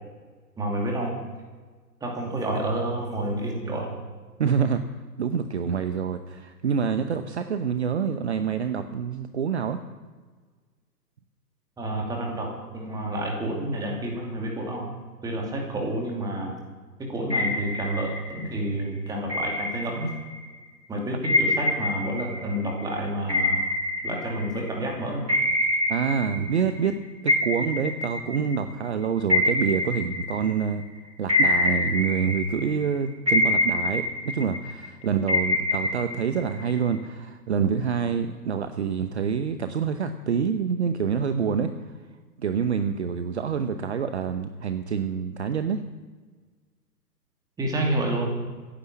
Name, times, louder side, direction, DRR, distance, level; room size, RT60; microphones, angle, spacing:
voice 1, 0.6-1.1 2.0-4.0 11.8-14.9 15.2-16.6 17.1-20.1 20.9-23.6 24.0-25.3 47.6-48.3, right 1 dB, 5° right, 0 dB, 2.6 m, -29 dB
voice 2, 4.4-4.8 5.2-9.8 25.9-27.0 27.2-30.8 31.2-42.0 42.4-45.8, right 7 dB, 40° right, 9 dB, 0.9 m, -27 dB
sound 1, 17.3-18.6 19.3-20.5 21.2-24.9 25.3-26.9 27.3-30.8 31.3-32.9 33.3-34.9 35.3-37.0, left 2 dB, 75° right, 3.3 m, -26 dB
15.5 x 10.0 x 7.6 m, 1.4 s
figure-of-eight pair, 130°, 50 cm